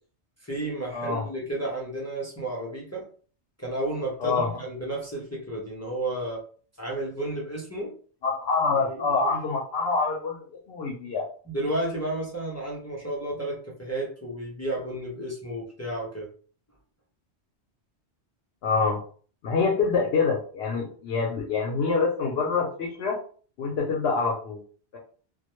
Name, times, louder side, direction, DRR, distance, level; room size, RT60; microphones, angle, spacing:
voice 1, 0.4-3.1 3.6-6.4 6.8-7.9 8.8-9.3 11.5-16.3, right 1 dB, 20° left, -4 dB, 0.4 m, -32 dB
voice 2, 0.9-1.2 4.2-4.5 8.2-11.2 18.6-19.0 19.4-23.2 23.6-24.6 24.9-25.0, left 4 dB, 70° left, 0 dB, 0.8 m, -26 dB
2.2 x 2.1 x 2.9 m, 0.43 s
omnidirectional pair, 1.1 m